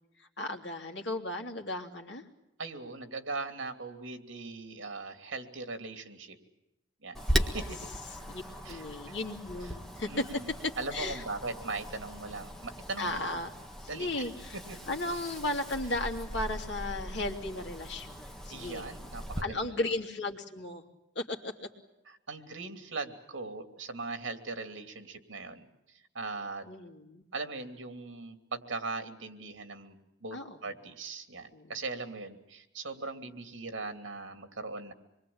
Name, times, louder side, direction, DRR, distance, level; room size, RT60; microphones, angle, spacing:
voice 1, 0.2-2.2 7.3-7.6 8.3-8.4 8.7-11.2 13.0-13.5 13.8-14.6 14.9-18.9 19.4-20.8 21.1-21.5 26.7-27.2 30.3-30.6 31.5-31.7, left 2 dB, 65° left, 3 dB, 2.9 m, -35 dB
voice 2, 2.6-6.4 7.0-7.2 7.5-7.8 8.6-9.2 9.6-9.7 10.1-10.5 10.8-13.3 13.9-14.3 14.5-14.8 18.5-19.9 22.1-26.7 27.3-34.9, right 3 dB, 80° right, 7 dB, 2.9 m, -40 dB
Wind, 7.1-19.4, equal, ahead, 1.6 m, -38 dB
26.5 x 22.5 x 8.7 m, 0.92 s
head